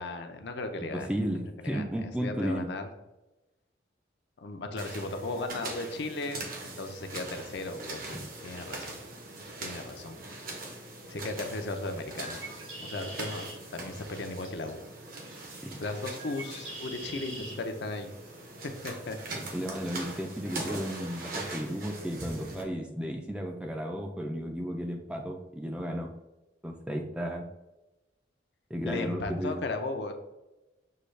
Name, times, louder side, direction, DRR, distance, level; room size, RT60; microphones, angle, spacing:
voice 1, 0.0-1.1 1.6-2.9 4.4-9.0 9.6-10.2 11.1-12.4 12.8-14.8 15.8-18.1 18.6-19.2 28.8-30.1, left 2 dB, 65° left, 6 dB, 0.5 m, -36 dB
voice 2, 0.9-2.7 15.6-15.7 19.5-26.1 26.6-27.5 28.7-29.6, equal, 5° right, 2 dB, 0.3 m, -34 dB
sound 1, 4.8-22.6, right 2 dB, 50° right, 0.8 m, -42 dB
Bird, 12.1-17.6, right 1 dB, 75° right, 1.4 m, -46 dB
6.5 x 2.3 x 3.1 m, 1.0 s
head